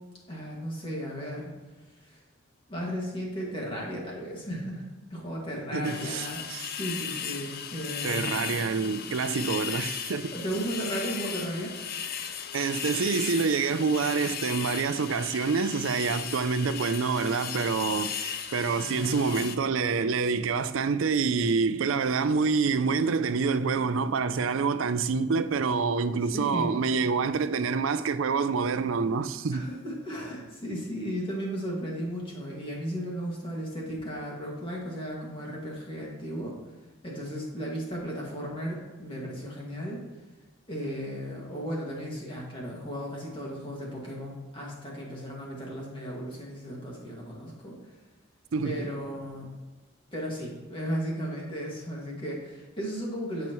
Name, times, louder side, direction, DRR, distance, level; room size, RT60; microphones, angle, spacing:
voice 1, 0.3-1.5 2.0-2.2 2.7-8.3 10.3-11.7 18.8-19.3 26.3-26.7 29.5-36.6 37.0-40.0 40.7-47.7 48.6-49.5 50.1-53.5, equal, 25° left, 2.1 m, -35 dB
voice 2, 5.7-6.7 8.0-10.3 12.5-29.7 48.5-48.9, right 5 dB, 85° right, 0.5 m, -27 dB
sound 1, 5.8-19.6, left 8 dB, 50° left, 0.6 m, -36 dB
13.5 x 5.9 x 3.1 m
head